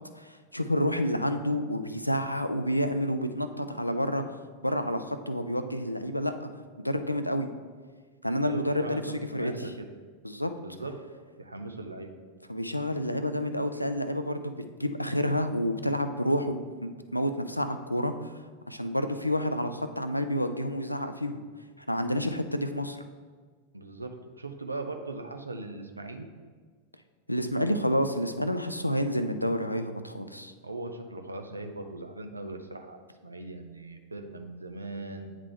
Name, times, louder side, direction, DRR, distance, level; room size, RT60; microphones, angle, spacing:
voice 1, 0.2-6.5 6.8-7.5 8.2-9.0 9.3-9.7 10.2-10.5 12.5-18.3 18.7-21.4 21.8-23.0 27.3-30.5, equal, 90° left, 9 dB, 0.4 m, -29 dB
voice 2, 8.4-9.9 10.6-10.9 11.4-12.1 23.7-26.3 30.6-35.3, right 2 dB, 80° right, 6 dB, 0.6 m, -39 dB
9.0 x 3.7 x 3.3 m, 1.5 s
figure-of-eight pair, 90°, 0 cm